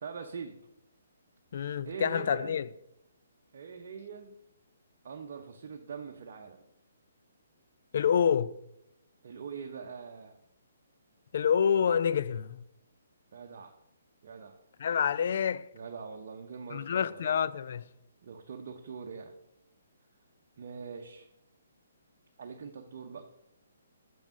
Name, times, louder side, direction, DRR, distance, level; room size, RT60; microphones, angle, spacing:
voice 1, 0.0-0.6 1.8-2.6 3.5-4.3 5.0-6.6 9.2-10.3 13.3-13.7 14.2-14.5 15.7-17.2 18.2-19.3 20.6-21.3 22.4-23.3, right 6 dB, 55° right, 0.8 m, -43 dB
voice 2, 1.5-2.7 7.9-8.5 11.3-12.6 14.8-15.7 16.7-17.9, left 7 dB, 55° left, 0.3 m, -27 dB
6.2 x 5.3 x 6.2 m
hypercardioid pair, 140°, 0 cm